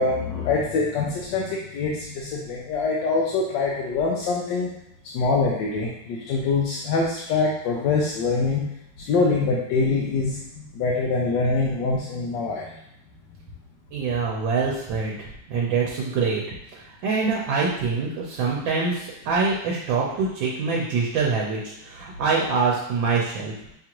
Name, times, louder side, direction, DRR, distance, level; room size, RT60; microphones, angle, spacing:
voice 1, 0.0-4.7 5.1-8.6 9.0-12.7, left 3 dB, 75° left, -3 dB, 1.2 m, -24 dB
voice 2, 13.9-16.4 16.7-23.5, right 4 dB, 90° right, -2 dB, 1.4 m, -25 dB
6.2 x 2.4 x 2.9 m, 0.80 s
omnidirectional pair, 2.0 m